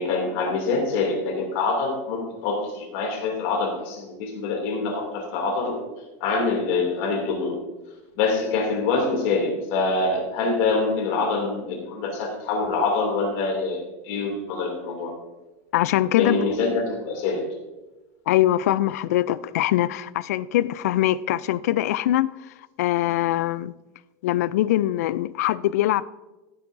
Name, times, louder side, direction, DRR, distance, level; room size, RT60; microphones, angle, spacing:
voice 1, 0.0-5.8 6.2-7.5 8.2-13.8 14.0-15.1 16.2-17.5, left 3 dB, 55° left, 2.6 m, -25 dB
voice 2, 15.7-16.4 18.3-22.3 22.8-23.7 24.2-26.0, left 14 dB, 80° left, 0.4 m, -22 dB
14.5 x 8.4 x 2.6 m
supercardioid pair, 165°, 8 cm